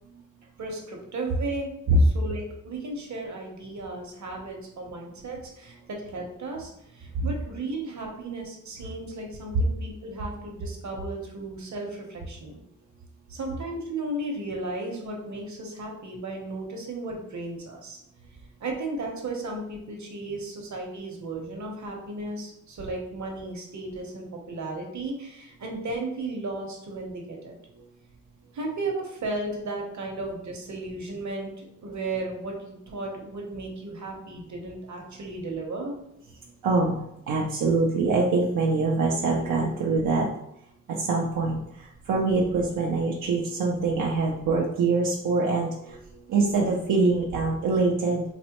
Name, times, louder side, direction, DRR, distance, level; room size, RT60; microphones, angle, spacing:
voice 1, 0.6-1.7 2.0-12.6 13.3-18.0 18.6-27.5 28.5-36.0, right 2 dB, 60° right, 1 dB, 0.9 m, -35 dB
voice 2, 36.6-37.0 37.3-40.3 40.9-48.2, right 3 dB, 85° right, -3 dB, 0.5 m, -24 dB
4.1 x 2.1 x 2.9 m, 0.78 s
cardioid pair, 60°, 32 cm